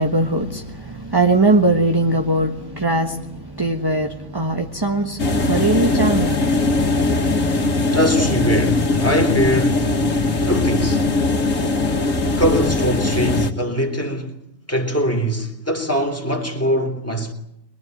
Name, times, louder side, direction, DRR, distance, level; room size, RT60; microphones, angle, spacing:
voice 1, 0.0-6.7, right 2 dB, 20° right, 1.3 m, -20 dB
sound 1, 5.2-13.5, left 2 dB, 85° left, 2.2 m, -20 dB
voice 2, 7.9-9.9 10.4-11.1 12.4-14.3 14.7-17.3, equal, 10° left, 3.3 m, -22 dB
23.0 x 22.5 x 9.5 m
omnidirectional pair, 1.3 m